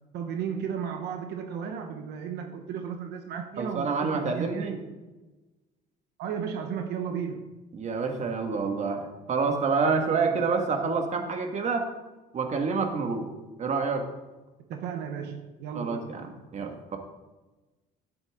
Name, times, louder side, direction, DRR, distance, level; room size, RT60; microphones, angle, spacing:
voice 1, 0.1-5.0 6.2-7.5 10.2-10.5 14.7-16.2, right 7 dB, 80° right, 5 dB, 0.9 m, -34 dB
voice 2, 3.6-4.8 7.7-11.9 12.3-13.3 13.6-14.1 15.7-17.0, right 4 dB, 45° right, 5 dB, 1.5 m, -28 dB
11.0 x 8.1 x 3.6 m, 1.1 s
cardioid pair, 110°, 17 cm